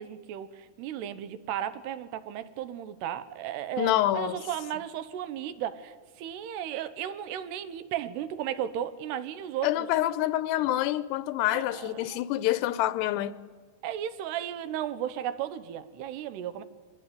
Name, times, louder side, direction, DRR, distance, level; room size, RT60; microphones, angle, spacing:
voice 1, 0.0-9.9 11.5-12.2 13.8-16.6, right 10 dB, 80° right, 3.2 m, -35 dB
voice 2, 3.8-4.4 9.6-13.3, left 14 dB, 85° left, 2.9 m, -27 dB
25.0 x 18.5 x 9.5 m
omnidirectional pair, 4.8 m